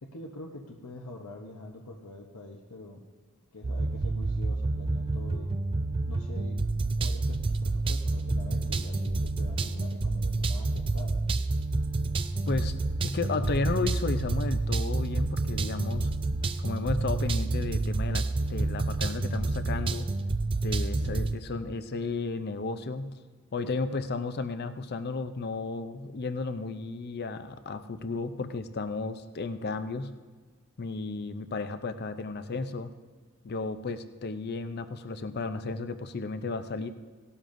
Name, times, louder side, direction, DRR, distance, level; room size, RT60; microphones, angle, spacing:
voice 1, 0.0-3.0 3.5-5.5 6.1-6.6 7.0-11.2, left 2 dB, 75° left, 1 dB, 0.9 m, -44 dB
sound 1, 3.6-21.4, right 2 dB, 25° right, 0.3 m, -29 dB
voice 2, 13.0-16.1 16.6-20.1 20.6-23.1 23.5-30.1 30.8-32.9 33.4-36.9, left 3 dB, 45° left, 10 dB, 0.5 m, -33 dB
17.5 x 12.5 x 2.6 m, 1.4 s
head